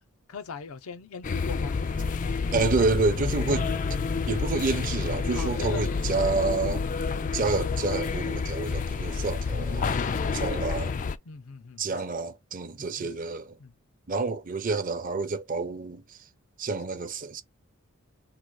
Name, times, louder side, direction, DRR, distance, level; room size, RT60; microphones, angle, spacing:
voice 1, 0.3-1.8 5.3-6.0 10.2-10.6 11.3-12.0 13.0-13.1 13.6-13.7, left 5 dB, 85° left, 0.6 m, -40 dB
sound 1, 1.2-11.2, left 4 dB, 35° left, 0.3 m, -29 dB
voice 2, 2.5-3.7 4.3-6.8 7.3-10.0 10.3-10.9 11.8-13.6 14.1-16.2 16.6-17.4, right 3 dB, 40° right, 0.6 m, -28 dB
3.8 x 2.4 x 4.6 m
head